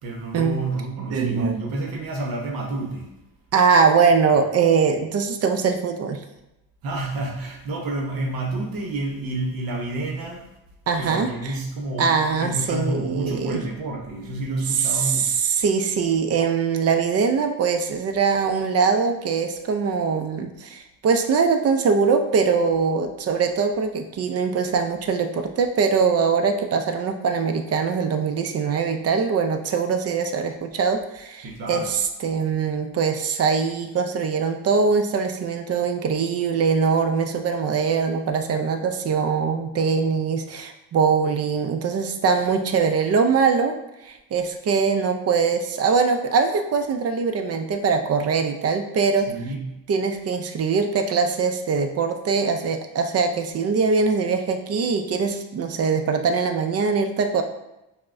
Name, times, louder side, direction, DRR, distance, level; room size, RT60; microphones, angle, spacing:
voice 1, 0.0-3.1 6.8-10.5 10.9-15.3 31.4-31.9 49.3-49.7, right 2 dB, 70° right, 0 dB, 0.8 m, -29 dB
voice 2, 1.0-1.7 3.5-6.2 10.9-11.5 12.0-13.6 14.9-43.8 44.0-49.3 49.9-57.4, right 5 dB, 45° right, 6 dB, 0.4 m, -22 dB
5.6 x 2.1 x 2.5 m, 0.94 s
cardioid pair, 105°, 37 cm